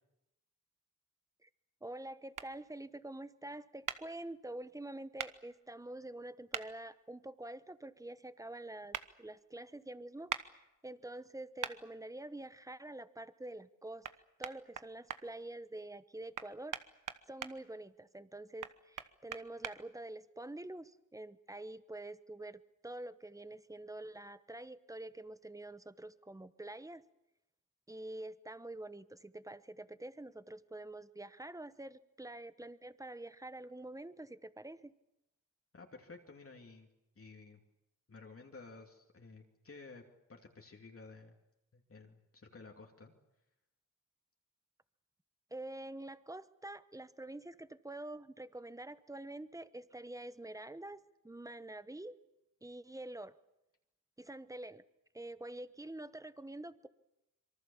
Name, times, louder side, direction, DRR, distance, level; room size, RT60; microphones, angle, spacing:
voice 1, 1.8-14.1 14.4-16.8 17.3-27.0 27.9-34.9 45.5-52.2 52.6-53.4 54.2-54.8 55.1-56.9, right 1 dB, 10° right, 14 dB, 1.0 m, -47 dB
sound 1, 2.3-2.5 3.9-4.0 5.2-5.3 6.5-6.7 8.9-9.1 10.3-10.4 11.6-11.8 14.0-14.1 14.4-15.2 16.3-17.5 18.6-19.7, right 8 dB, 75° right, 1.2 m, -40 dB
voice 2, 35.7-36.9 37.2-37.6 38.1-40.0 40.3-41.4 41.7-43.1, left 3 dB, 45° left, 2 dB, 2.7 m, -53 dB
26.0 x 23.5 x 7.2 m, 0.89 s
wide cardioid pair, 95°, 32 cm